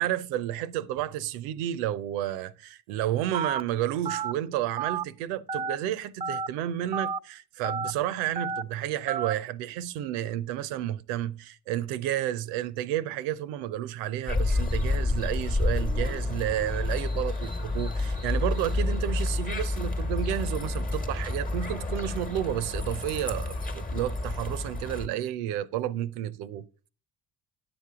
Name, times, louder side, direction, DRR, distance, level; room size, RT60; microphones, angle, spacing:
voice 1, 0.0-26.7, right 12 dB, 70° right, 0.7 m, -31 dB
Telephone, 3.3-3.6 4.0-4.3 4.8-5.0 5.5-5.8 6.2-6.5 6.9-7.2 7.6-7.9 8.4-8.6 9.1-9.3, right 6 dB, 15° right, 0.4 m, -30 dB
sound 1, 14.3-25.1, left 2 dB, 20° left, 1.2 m, -29 dB
10.5 x 6.9 x 3.6 m
hypercardioid pair, 50°, 43 cm